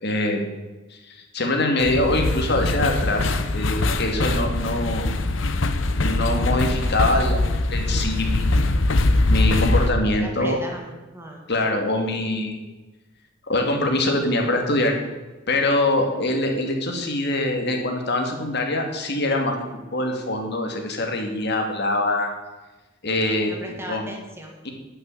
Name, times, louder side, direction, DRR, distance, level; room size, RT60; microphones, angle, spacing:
voice 1, 0.0-0.4 1.1-5.1 6.0-8.7 9.3-10.6 11.5-12.6 13.5-14.9 15.5-19.7 19.9-22.3 23.0-23.5 23.9-24.1 24.6-24.7, left 1 dB, 60° left, 3 dB, 2.3 m, -24 dB
sound 1, 1.8-9.9, left 2 dB, 75° left, 0.8 m, -22 dB
voice 2, 10.2-11.4 23.4-24.6, right 1 dB, 15° right, 1 dB, 1.9 m, -37 dB
11.0 x 6.1 x 9.1 m, 1.2 s
head